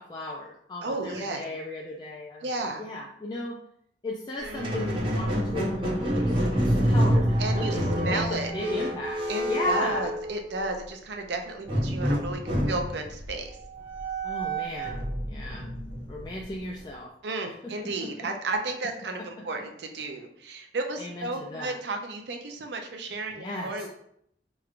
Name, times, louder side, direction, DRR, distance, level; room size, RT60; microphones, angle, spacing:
voice 1, 0.0-2.5 2.8-3.6 4.0-9.2 9.5-10.1 14.2-15.0 15.3-15.7 16.1-17.1 17.6-18.3 19.2-19.5 21.0-21.8 23.4-23.9, left 1 dB, 25° left, -2 dB, 0.3 m, -35 dB
voice 2, 0.8-1.4 2.4-2.8 7.4-8.5 9.3-13.5 17.2-23.9, right 2 dB, 70° right, 4 dB, 0.6 m, -33 dB
Squeak, 4.4-10.7 11.7-16.9, equal, 30° right, 0.8 m, -28 dB
4.6 x 3.0 x 2.5 m, 0.71 s
head